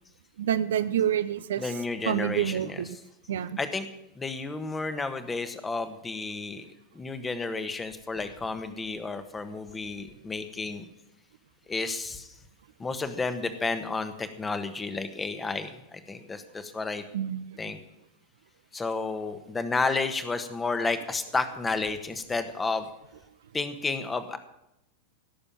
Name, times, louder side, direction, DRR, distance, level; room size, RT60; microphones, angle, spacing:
voice 1, 0.4-1.6 2.1-3.0 3.3-3.6 17.1-17.4, right 10 dB, 60° right, 13 dB, 0.7 m, -27 dB
voice 2, 1.6-2.8 3.6-3.9 4.1-6.6 6.9-10.8 11.7-12.3 12.8-17.0 17.6-17.8 18.7-22.9 23.5-24.4, left 3 dB, 15° left, 10 dB, 1.4 m, -31 dB
17.0 x 7.0 x 9.1 m, 0.85 s
figure-of-eight pair, 90°, 0 cm